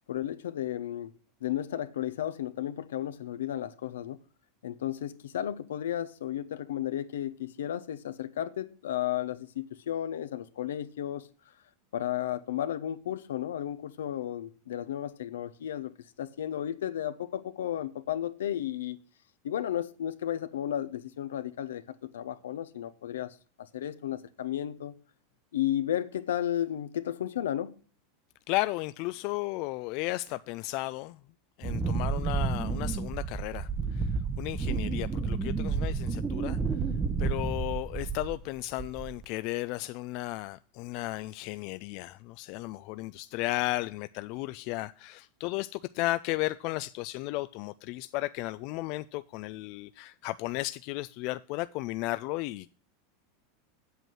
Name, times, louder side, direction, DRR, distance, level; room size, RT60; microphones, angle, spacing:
voice 1, 0.1-1.1 1.4-4.2 4.6-11.3 11.9-15.9 16.2-19.0 19.4-24.9 25.5-27.7, left 11 dB, 85° left, 0.8 m, -33 dB
voice 2, 28.5-31.2 31.6-34.1 34.4-36.6 37.2-52.7, left 19 dB, 55° left, 0.4 m, -34 dB
Wind, 31.6-38.5 38.8-39.2, right 5 dB, 20° right, 0.8 m, -31 dB
8.1 x 7.5 x 6.3 m
hypercardioid pair, 110°, 0 cm